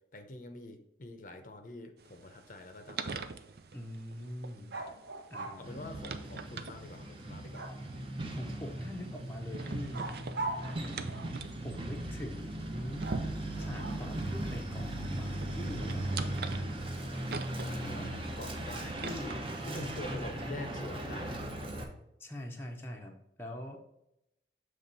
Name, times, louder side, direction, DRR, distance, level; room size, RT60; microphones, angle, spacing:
voice 1, 0.1-3.3 5.6-7.7 17.6-21.4, left 2 dB, 45° left, 6 dB, 0.7 m, -45 dB
sound 1, 2.0-20.3, right 4 dB, 60° right, 0.5 m, -45 dB
voice 2, 3.7-4.8 5.3-5.9 8.3-10.2 11.6-13.1 13.6-16.2 19.7-20.5 22.2-23.8, left 1 dB, 10° left, 1 dB, 0.7 m, -43 dB
sound 2, 4.7-5.6 7.5-8.1 9.9-11.5 13.0-14.2, right 2 dB, 90° right, 1.1 m, -41 dB
Truck, 5.6-21.8, right 1 dB, 30° right, 0.9 m, -38 dB
7.1 x 3.4 x 4.0 m, 0.84 s
head